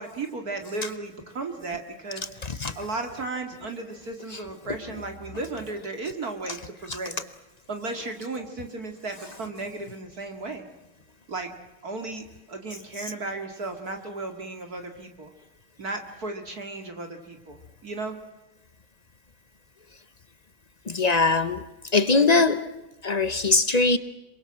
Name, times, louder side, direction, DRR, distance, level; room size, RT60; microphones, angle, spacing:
voice 1, 0.0-2.5 2.8-7.2 7.7-10.6 11.3-11.5 11.8-15.3 15.8-17.6 17.8-18.2 22.2-22.4, right 3 dB, 45° right, 5 dB, 2.6 m, -35 dB
voice 2, 2.4-2.8 4.3-4.4 4.7-4.8 6.9-7.0 13.0-13.1 20.9-21.6 21.9-22.6 23.0-24.0, left 3 dB, 80° left, 13 dB, 0.3 m, -22 dB
27.0 x 23.5 x 7.5 m, 1.0 s
omnidirectional pair, 2.2 m